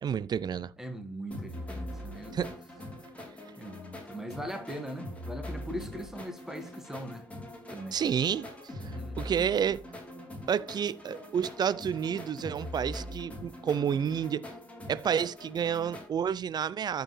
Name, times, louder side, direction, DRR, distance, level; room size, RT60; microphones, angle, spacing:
voice 1, 0.0-0.7 2.3-2.5 7.9-8.5 8.8-9.8 10.5-14.4 14.9-17.0, right 8 dB, 40° right, 0.5 m, -30 dB
voice 2, 0.8-2.6 3.6-7.3 7.7-8.0 8.9-9.5, equal, 5° right, 1.7 m, -41 dB
sound 1, 1.3-16.1, left 1 dB, 10° left, 3.8 m, -42 dB
13.0 x 4.7 x 3.3 m
hypercardioid pair, 50°, 11 cm